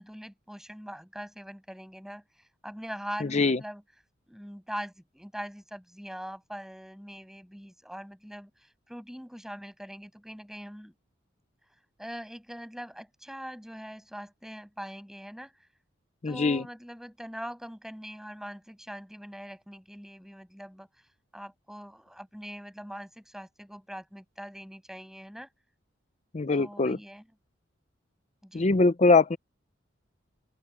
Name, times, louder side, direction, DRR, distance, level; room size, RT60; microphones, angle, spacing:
voice 1, 0.0-3.8 4.3-10.9 12.0-15.5 16.3-20.9 21.3-25.5 26.5-27.2 28.4-28.7, equal, ahead, 7.5 m, -42 dB
voice 2, 3.2-3.6 16.2-16.6 26.3-27.0 28.5-29.4, left 3 dB, 35° left, 0.6 m, -22 dB
open air
head